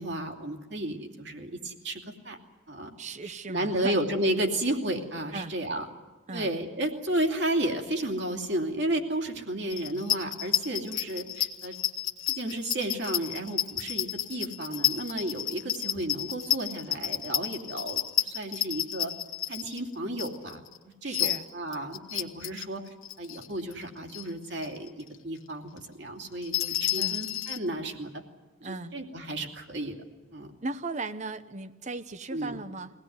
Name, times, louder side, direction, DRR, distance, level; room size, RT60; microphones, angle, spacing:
voice 1, 0.0-2.4 2.7-2.9 3.2-5.8 6.3-11.8 12.3-19.1 19.5-20.6 21.0-22.8 23.2-28.2 28.6-30.0 30.3-30.5 32.3-32.6, right 1 dB, 55° right, 2 dB, 2.7 m, -32 dB
voice 2, 3.0-4.0 5.3-5.5 6.3-6.5 21.0-21.5 27.0-27.2 28.6-28.9 30.6-32.9, right 3 dB, 35° right, 12 dB, 0.9 m, -37 dB
sound 1, 9.7-20.8 21.1-22.6 23.0-23.8 24.1-24.2 24.5-24.9 25.1-25.2 26.3-27.6, left 11 dB, 85° left, 1.4 m, -30 dB
23.5 x 18.0 x 9.5 m, 1.3 s
head